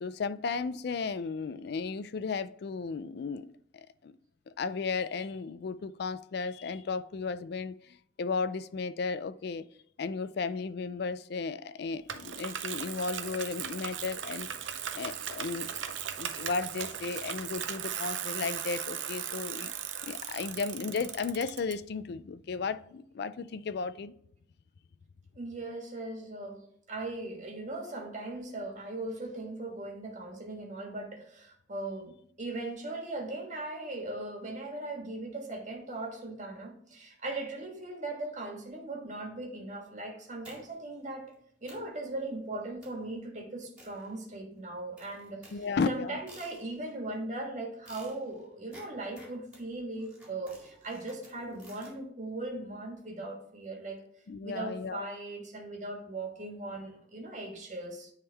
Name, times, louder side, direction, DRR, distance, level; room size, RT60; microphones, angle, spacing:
voice 1, 0.0-3.5 3.7-4.1 4.6-9.7 10.0-14.5 14.9-19.7 20.0-24.1 45.5-46.2 54.3-55.1, left 4 dB, 60° left, 0.4 m, -34 dB
Bicycle, 12.1-21.7, right 9 dB, 80° right, 0.6 m, -37 dB
voice 2, 25.3-41.3 41.6-45.6 45.9-54.0 54.4-58.1, right 2 dB, 40° right, 1.5 m, -39 dB
sound 1, 40.4-40.9 41.3-41.4 41.7-42.0 42.8-43.1 43.8-44.5 45.0-47.0 47.9-52.0, right 1 dB, 5° right, 2.0 m, -55 dB
9.7 x 3.7 x 3.3 m
head